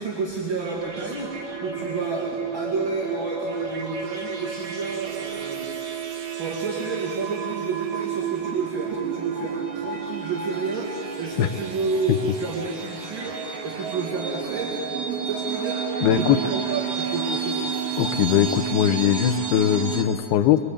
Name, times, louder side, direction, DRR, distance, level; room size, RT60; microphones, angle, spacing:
voice 1, 0.0-6.0 6.3-17.7, right 4 dB, 35° right, -3 dB, 2.9 m, -31 dB
sound 1, 0.6-20.0, right 6 dB, 50° right, 2.9 m, -31 dB
voice 2, 16.0-16.4 18.0-20.6, left 11 dB, 80° left, 9 dB, 2.6 m, -20 dB
24.0 x 23.0 x 8.5 m, 2.6 s
omnidirectional pair, 4.8 m